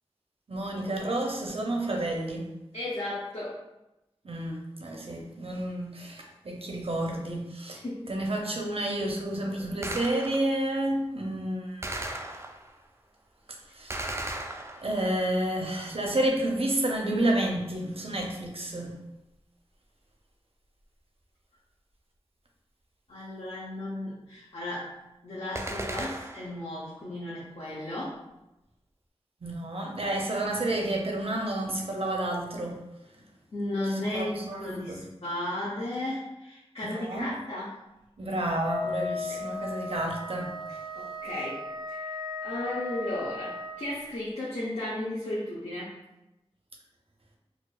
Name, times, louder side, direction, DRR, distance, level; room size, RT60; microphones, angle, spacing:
voice 1, 0.5-2.5 4.2-12.2 13.7-14.2 14.8-18.9 29.4-32.8 34.1-35.0 36.9-37.3 38.2-40.6, right 1 dB, 60° right, 0 dB, 0.7 m, -30 dB
voice 2, 2.7-3.6 7.7-8.2 23.1-28.2 33.5-37.9 39.3-39.4 40.7-41.6 41.9-46.0, left 1 dB, 75° left, -8 dB, 0.7 m, -35 dB
Gunshot gunfire, 9.8-10.6 11.8-12.8 13.9-15.2 25.6-26.6, right 1 dB, 25° right, 0.3 m, -36 dB
Wind instrument woodwind instrument, 38.6-43.9, left 2 dB, 45° left, 0.6 m, -36 dB
4.2 x 2.3 x 2.4 m, 0.94 s
wide cardioid pair, 65°, 11 cm